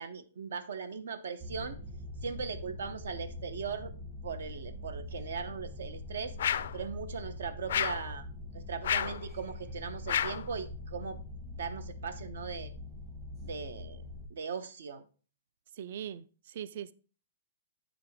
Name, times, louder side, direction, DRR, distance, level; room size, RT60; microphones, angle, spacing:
voice 1, 0.0-1.8 2.2-3.9 4.2-6.4 6.7-8.3 8.5-11.2 11.6-12.7 13.4-14.0 14.3-15.0, right 5 dB, 75° right, 0.7 m, -39 dB
sound 1, 1.4-14.3, left 2 dB, 20° right, 0.8 m, -43 dB
sound 2, 6.4-6.8 7.7-8.1 8.8-9.2 10.1-10.5, left 9 dB, 55° left, 0.3 m, -30 dB
voice 2, 15.7-16.9, right 9 dB, 45° right, 0.3 m, -41 dB
8.9 x 5.0 x 3.5 m
hypercardioid pair, 175°, 0 cm